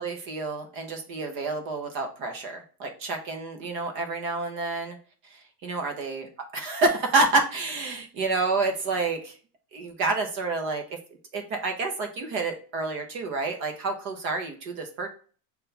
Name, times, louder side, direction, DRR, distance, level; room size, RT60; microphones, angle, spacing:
voice 1, 0.0-5.0 5.2-6.2 6.5-9.4 9.7-11.0 11.3-15.1, right 3 dB, 30° right, 4 dB, 0.4 m, -28 dB
5.3 x 2.2 x 3.7 m, 0.40 s
supercardioid pair, 165°, 48 cm